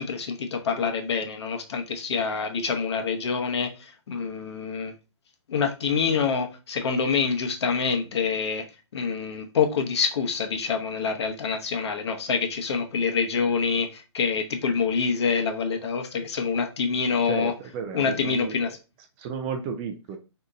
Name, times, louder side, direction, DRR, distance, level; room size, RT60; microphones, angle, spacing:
voice 1, 0.0-4.9 5.5-8.6 8.9-17.5 17.9-18.7, left 5 dB, 60° left, 4 dB, 0.8 m, -26 dB
voice 2, 17.2-20.2, right 6 dB, 20° right, 5 dB, 0.3 m, -34 dB
3.6 x 2.8 x 2.4 m, 0.30 s
hypercardioid pair, 140°, 15 cm